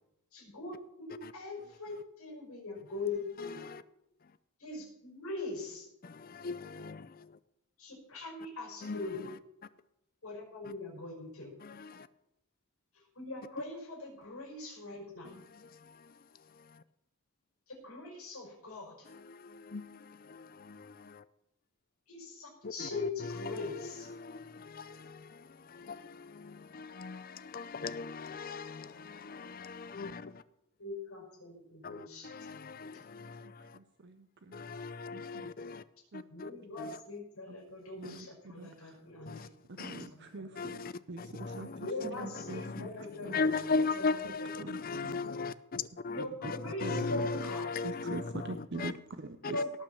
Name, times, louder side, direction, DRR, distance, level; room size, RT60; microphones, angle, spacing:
voice 1, 0.3-3.6 4.6-5.9 7.8-9.2 10.2-11.5 13.2-15.3 17.8-19.1 22.1-24.1 30.8-33.0 36.3-39.5 40.1-40.6 41.8-44.1 44.4-44.7 46.1-47.7 49.4-49.8, left 2 dB, 85° left, 5.3 m, -41 dB
voice 2, 3.4-3.8 6.0-7.3 8.8-9.1 11.6-12.1 15.9-16.0 19.1-21.2 22.6-30.4 31.8-33.8 34.5-35.8 36.1-36.5 36.8-37.0 38.0-38.2 39.3-39.5 39.8-40.1 40.6-48.9, left 4 dB, 40° left, 0.5 m, -38 dB
voice 3, 33.4-34.6 35.1-35.2 36.1-36.2 37.5-37.6 38.0-39.0 39.7-41.7 42.0-43.4 44.2-44.3 44.6-45.2 46.2-46.5 46.8-47.3 47.8-49.6, right 3 dB, 50° right, 0.6 m, -44 dB
17.5 x 6.1 x 7.0 m
head